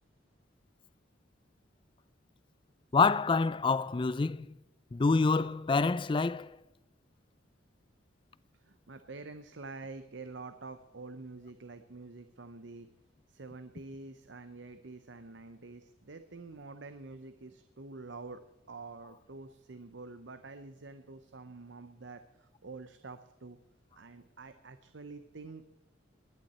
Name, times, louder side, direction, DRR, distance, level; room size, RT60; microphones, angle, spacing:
voice 1, 2.9-4.6 4.9-6.5, left 4 dB, 25° left, 0.4 m, -27 dB
voice 2, 8.6-12.9 13.3-18.4 18.7-23.6 24.0-25.6, right 3 dB, 65° right, 0.8 m, -47 dB
20.5 x 11.0 x 4.3 m
head